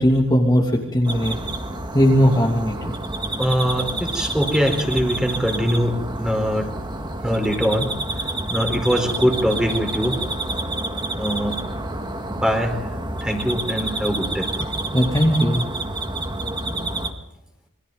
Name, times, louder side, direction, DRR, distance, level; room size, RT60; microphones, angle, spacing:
voice 1, 0.0-1.4 1.9-2.8 14.9-15.6, equal, 20° left, -2 dB, 2.6 m, -18 dB
sound 1, 1.0-17.1, right 2 dB, 20° right, 2.0 m, -29 dB
voice 2, 3.4-6.7 7.2-7.9 8.5-10.2 11.1-11.5 12.3-12.8 13.2-14.5, equal, 5° right, 4 dB, 4.3 m, -22 dB
28.5 x 24.0 x 4.0 m, 0.82 s
head